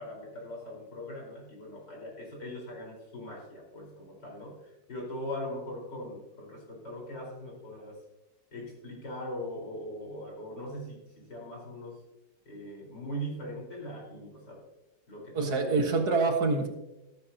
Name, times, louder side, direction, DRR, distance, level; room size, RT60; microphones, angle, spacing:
voice 1, 0.0-8.0 8.5-12.0 12.4-14.6 15.1-16.1, equal, 70° left, -2 dB, 5.1 m, -40 dB
voice 2, 15.3-16.7, right 3 dB, 65° right, 3 dB, 2.1 m, -26 dB
14.0 x 13.5 x 2.8 m, 0.98 s
omnidirectional pair, 1.9 m